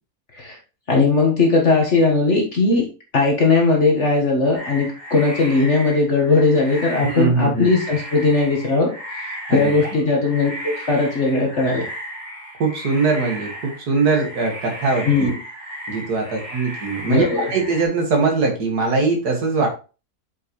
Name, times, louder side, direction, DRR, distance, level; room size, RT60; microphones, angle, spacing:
voice 1, 0.9-2.9 3.1-11.8 15.1-15.4 17.1-17.5, left 3 dB, 50° left, 0 dB, 1.8 m, -18 dB
sound 1, 4.5-17.9, equal, 15° right, 2.7 m, -35 dB
voice 2, 7.0-7.7 9.5-9.8 12.6-15.3 15.9-19.7, right 4 dB, 85° right, 2 dB, 2.3 m, -21 dB
7.1 x 5.6 x 3.1 m, 0.32 s
omnidirectional pair, 1.6 m